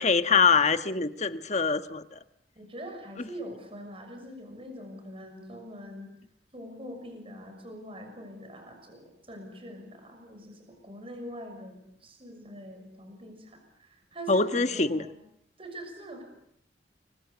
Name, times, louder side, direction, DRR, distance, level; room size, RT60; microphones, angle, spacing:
voice 1, 0.0-2.0 14.3-15.0, left 4 dB, 40° left, 10 dB, 1.4 m, -24 dB
voice 2, 2.6-6.1 6.5-15.1 15.6-16.2, equal, 35° right, 5 dB, 6.2 m, -43 dB
29.5 x 23.5 x 8.1 m, 0.75 s
head